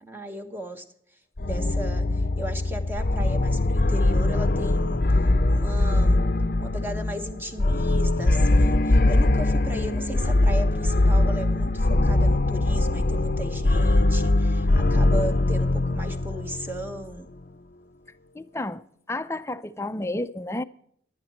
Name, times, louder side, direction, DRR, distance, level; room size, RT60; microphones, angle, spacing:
voice 1, 0.0-0.8 1.4-5.0 5.5-6.2 6.6-17.3, right 1 dB, 10° right, 1.2 m, -36 dB
sound 1, 1.4-17.1, left 2 dB, 50° left, 0.7 m, -22 dB
voice 2, 18.4-18.8 19.1-20.6, left 1 dB, 15° left, 0.5 m, -31 dB
15.0 x 11.0 x 4.3 m
head